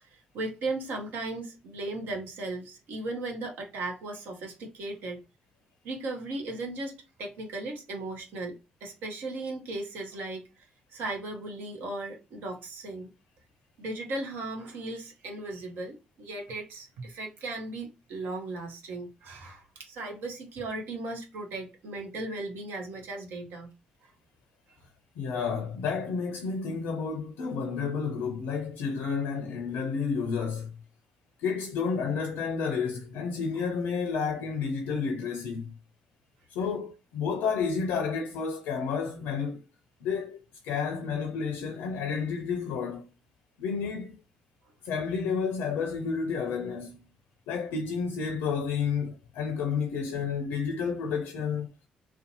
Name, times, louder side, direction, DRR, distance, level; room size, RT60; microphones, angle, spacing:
voice 1, 0.1-5.2 5.8-10.7 10.9-13.1 13.8-23.7, right 2 dB, 70° right, 0.7 m, -37 dB
voice 2, 25.2-30.7 31.4-35.7 36.5-39.6 40.0-43.0 43.6-44.2 44.8-47.0 47.5-51.7, left 5 dB, 70° left, 0.4 m, -31 dB
2.5 x 2.1 x 2.8 m
hypercardioid pair, 50°, 4 cm